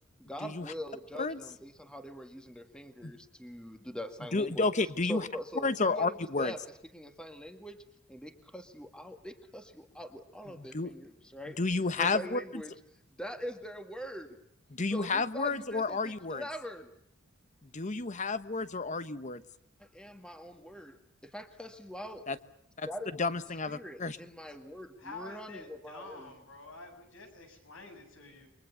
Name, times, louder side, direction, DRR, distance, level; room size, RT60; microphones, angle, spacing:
voice 1, 0.2-4.7 5.0-6.6 6.9-7.8 8.1-11.6 12.0-12.7 13.1-14.4 14.9-16.9 19.8-21.0 21.2-22.3 22.9-23.3 23.7-26.3, equal, 5° left, 7 dB, 1.8 m, -43 dB
voice 2, 4.3-5.3 5.6-6.5 10.5-10.9 11.6-12.4 14.7-16.4 17.7-19.4 22.3-22.4 22.8-22.9 23.2-24.2, left 3 dB, 35° left, 14 dB, 1.1 m, -31 dB
voice 3, 25.0-28.5, left 3 dB, 70° left, 5 dB, 7.6 m, -48 dB
29.5 x 24.0 x 6.9 m, 0.71 s
head